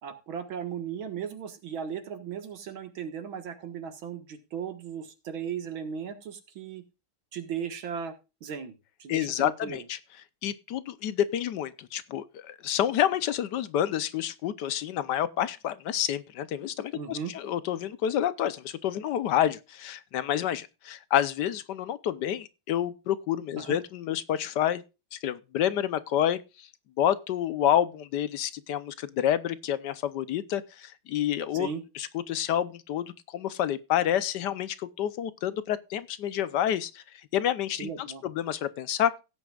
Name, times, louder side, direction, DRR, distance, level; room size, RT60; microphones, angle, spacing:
voice 1, 0.0-6.8 7.3-8.1 8.4-8.7 9.0-9.8 16.9-17.3 23.6-23.8 31.5-31.8 37.8-38.2, right 7 dB, 70° right, 2.4 m, -36 dB
voice 2, 9.1-10.0 10.4-24.8 25.1-26.7 27.0-31.7 31.9-37.0 37.3-39.1, left 10 dB, 65° left, 1.2 m, -28 dB
16.5 x 9.0 x 2.4 m
omnidirectional pair, 2.3 m